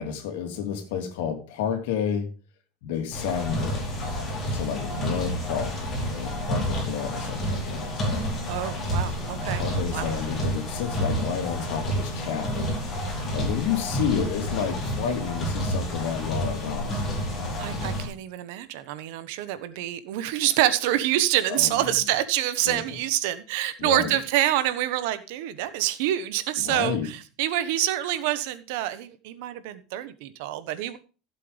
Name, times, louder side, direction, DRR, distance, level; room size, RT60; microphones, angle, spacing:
voice 1, 0.0-2.3 2.8-3.9 4.5-5.7 6.1-8.3 9.5-12.7 13.3-17.2 21.5-21.9 22.6-22.8 23.8-24.1 26.6-27.1, left 8 dB, 85° left, 5 dB, 2.9 m, -30 dB
sound 1, 3.1-18.1, equal, 20° left, 4.5 m, -29 dB
voice 2, 8.5-9.6 9.9-10.1 17.6-31.0, right 13 dB, 70° right, 12 dB, 1.1 m, -26 dB
16.0 x 7.6 x 3.4 m, 0.35 s
cardioid pair, 175°, 0 cm